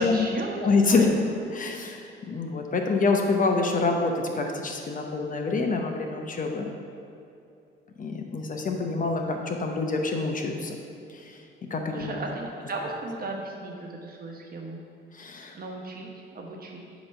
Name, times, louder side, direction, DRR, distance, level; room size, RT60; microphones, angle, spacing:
voice 1, 0.0-0.6 0.9-1.3 11.9-14.8 15.5-16.8, right 2 dB, 50° right, 0 dB, 1.1 m, -35 dB
voice 2, 0.6-1.1 1.5-6.7 8.0-10.8 11.1-11.4 11.7-12.1 15.1-15.6, left 3 dB, 40° left, 3 dB, 0.8 m, -26 dB
8.4 x 3.1 x 5.5 m, 2.6 s
cardioid pair, 90°, 20 cm